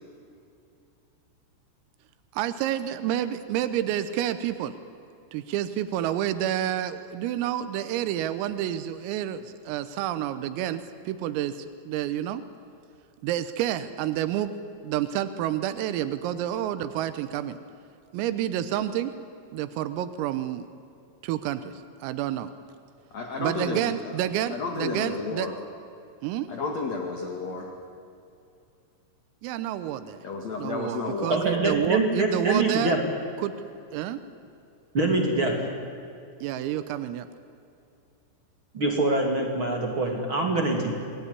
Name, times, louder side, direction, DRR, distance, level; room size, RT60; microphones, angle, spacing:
voice 1, 2.4-4.8 5.3-12.4 13.2-14.5 14.8-17.6 18.1-19.1 19.5-20.7 21.2-21.7 22.0-22.5 23.4-25.5 26.2-26.5 29.4-30.2 30.6-32.9 33.4-33.5 33.9-34.2 36.4-37.3, right 11 dB, 85° right, 12 dB, 3.7 m, -29 dB
voice 2, 23.1-24.0 24.5-25.5 26.5-27.7 30.2-31.4, left 4 dB, 50° left, 2 dB, 2.4 m, -31 dB
voice 3, 31.3-33.0 34.9-35.6 38.7-40.9, right 2 dB, 35° right, 1 dB, 2.6 m, -24 dB
28.0 x 20.5 x 9.8 m, 2.6 s
omnidirectional pair, 5.9 m